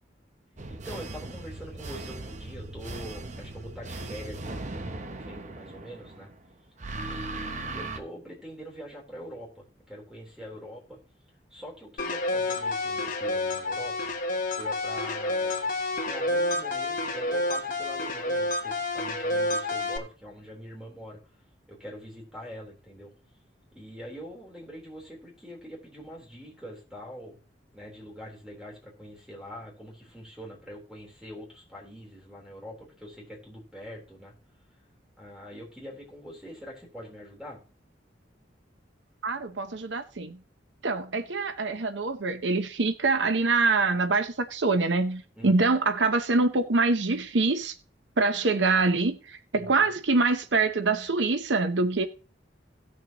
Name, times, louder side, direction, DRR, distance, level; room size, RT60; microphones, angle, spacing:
sound 1, 0.6-6.3 6.8-8.0, right 2 dB, 45° right, 0.9 m, -38 dB
voice 1, 0.7-6.3 6.9-11.0 11.5-14.1 14.6-15.7 16.0-21.2 21.7-23.1 23.7-27.4 27.7-34.3 35.2-37.6 45.4-45.6 49.5-50.0, equal, 5° right, 3.8 m, -44 dB
sound 2, 12.0-20.0, left 2 dB, 50° left, 1.5 m, -29 dB
voice 2, 39.2-40.4 40.8-47.7 48.2-52.1, right 3 dB, 85° right, 0.9 m, -25 dB
17.5 x 6.6 x 3.0 m
head